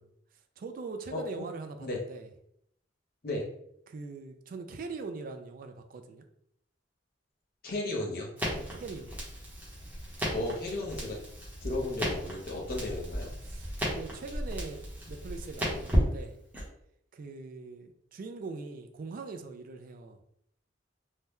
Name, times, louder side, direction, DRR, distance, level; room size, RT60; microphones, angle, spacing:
voice 1, 0.6-2.3 3.9-6.2 8.5-9.1 13.4-14.8 15.1-16.4 17.1-20.2, right 4 dB, 45° right, 6 dB, 0.3 m, -42 dB
voice 2, 1.1-1.5 1.8-2.0 3.2-3.4 7.6-8.3 10.3-11.2 11.6-13.3, left 2 dB, 55° left, -1 dB, 0.8 m, -34 dB
Crackle, 8.4-16.7, equal, 10° right, 0.8 m, -34 dB
2.7 x 2.2 x 3.4 m, 0.72 s
head